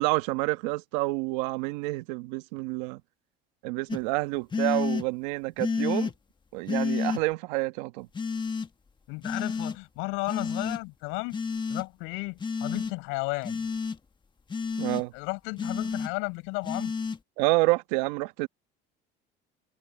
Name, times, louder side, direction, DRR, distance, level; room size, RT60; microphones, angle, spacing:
voice 1, 0.0-3.0 3.6-6.1 6.5-8.1 14.8-15.1 17.4-18.5, right 22 dB, 85° right, 1.3 m, -28 dB
sound 1, 3.9-4.0 4.5-5.0 5.6-6.1 6.7-7.2 8.1-8.7 9.2-9.8 10.3-10.8 11.3-11.8 12.4-12.9 13.4-14.0 14.5-15.0 15.6-16.1 16.6-17.2, left 5 dB, 20° left, 1.4 m, -30 dB
voice 2, 9.1-11.4 11.7-13.7 15.1-16.9, left 26 dB, 80° left, 6.6 m, -33 dB
supercardioid pair, 105°, 21 cm